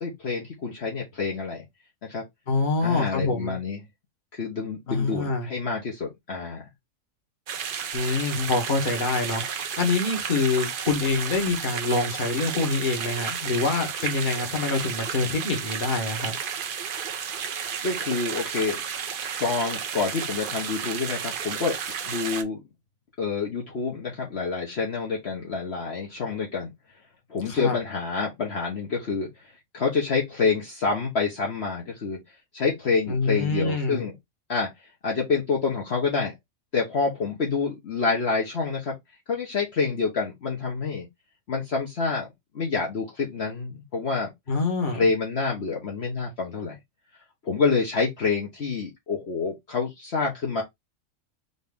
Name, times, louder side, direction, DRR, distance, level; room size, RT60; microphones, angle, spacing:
voice 1, 0.0-1.7 2.0-2.2 2.8-3.8 4.3-6.7 17.8-18.8 19.4-21.8 22.0-22.6 23.2-26.7 27.3-32.2 32.5-34.1 34.5-36.4 36.7-39.0 39.3-41.1 41.5-42.3 42.5-44.3 44.9-46.8 47.4-50.6, left 4 dB, 55° left, 1.3 m, -27 dB
voice 2, 2.5-3.6 4.9-5.5 7.9-16.4 27.5-27.8 33.1-34.0 44.5-45.1, left 3 dB, 40° left, 1.3 m, -26 dB
sound 1, 7.5-22.4, right 7 dB, 55° right, 0.6 m, -32 dB
4.1 x 2.9 x 3.5 m
omnidirectional pair, 1.4 m